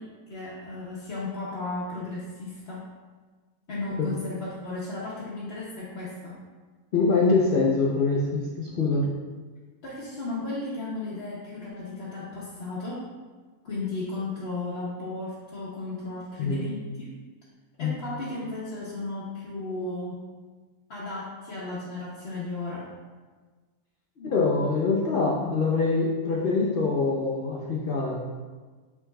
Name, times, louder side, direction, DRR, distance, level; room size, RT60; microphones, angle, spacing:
voice 1, 0.0-2.8 3.7-6.3 9.8-13.0 13.6-17.1 17.8-20.2 20.9-22.9 24.2-24.3, left 2 dB, 50° left, -8 dB, 0.9 m, -35 dB
voice 2, 6.9-9.1 16.4-16.7 17.8-18.0 24.2-28.2, left 3 dB, 70° left, -3 dB, 0.5 m, -24 dB
6.1 x 3.5 x 2.2 m, 1.4 s
omnidirectional pair, 1.6 m